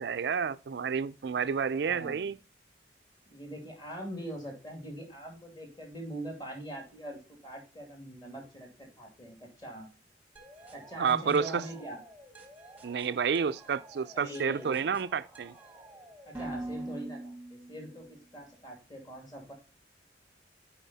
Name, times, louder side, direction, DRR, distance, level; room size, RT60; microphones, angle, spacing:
voice 1, 0.0-2.4 11.0-11.6 12.8-15.5, right 6 dB, 65° right, 0.4 m, -30 dB
voice 2, 1.3-2.3 3.3-9.9 10.7-12.0 14.1-14.9 16.3-19.5, right 1 dB, 25° left, 2.3 m, -43 dB
sound 1, 10.4-18.1, right 2 dB, 10° right, 1.0 m, -46 dB
9.1 x 4.7 x 4.1 m
head